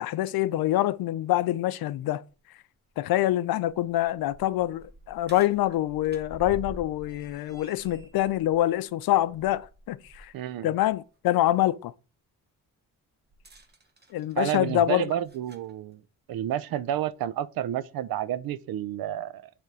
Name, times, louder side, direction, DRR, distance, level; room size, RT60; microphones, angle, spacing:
voice 1, 0.0-2.2 3.0-10.3 10.6-11.9 14.1-15.1, left 14 dB, 85° left, 0.5 m, -25 dB
sound 1, 2.9-3.0 3.6-10.3 10.7-10.9 13.3-15.7 16.7-16.8 17.6-17.7, right 2 dB, 30° right, 1.1 m, -48 dB
voice 2, 10.3-10.7 14.4-16.0 16.3-19.5, right 11 dB, 85° right, 0.6 m, -30 dB
6.7 x 3.5 x 4.8 m
cardioid pair, 95°, 35 cm